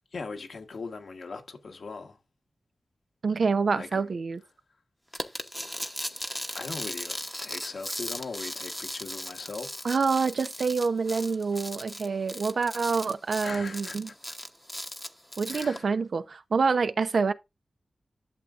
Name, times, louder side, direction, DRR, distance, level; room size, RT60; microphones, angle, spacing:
voice 1, 0.1-2.2 3.7-4.1 6.5-7.2 7.4-9.7 13.4-14.1 15.5-15.8, left 4 dB, 80° left, 1.3 m, -39 dB
voice 2, 3.2-4.4 9.8-14.1 15.4-17.3, right 5 dB, 75° right, 0.8 m, -27 dB
sound 1, 5.1-15.8, equal, 5° left, 0.9 m, -37 dB
11.5 x 7.1 x 2.5 m
wide cardioid pair, 80°, 0 cm